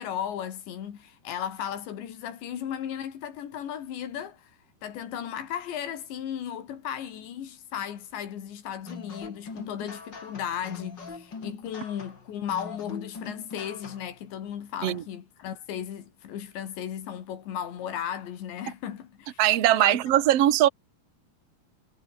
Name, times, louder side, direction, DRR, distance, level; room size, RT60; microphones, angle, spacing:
voice 1, 0.0-4.5 4.8-19.4 19.7-20.0, left 9 dB, 80° left, 5.1 m, -35 dB
sound 1, 8.8-14.2, left 4 dB, 25° left, 3.7 m, -42 dB
voice 2, 19.4-20.7, right 13 dB, 55° right, 1.7 m, -20 dB
omnidirectional pair, 5.0 m